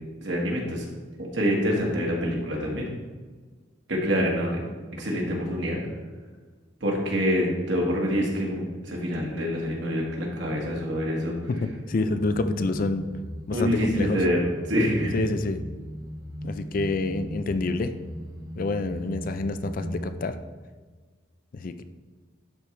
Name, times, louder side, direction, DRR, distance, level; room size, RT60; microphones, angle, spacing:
voice 1, 0.2-0.8 1.2-2.9 3.9-4.6 5.0-5.8 6.8-11.4 12.0-12.1 13.5-14.4 14.7-15.2, equal, 65° right, -1 dB, 1.8 m, -26 dB
voice 2, 11.5-13.1 13.5-14.2 15.1-15.6 16.4-17.9 18.6-20.4 21.5-21.8, left 3 dB, 45° left, 10 dB, 0.4 m, -28 dB
sound 1, 12.1-20.1, equal, 15° right, 0.9 m, -38 dB
11.5 x 4.6 x 3.3 m, 1.4 s
head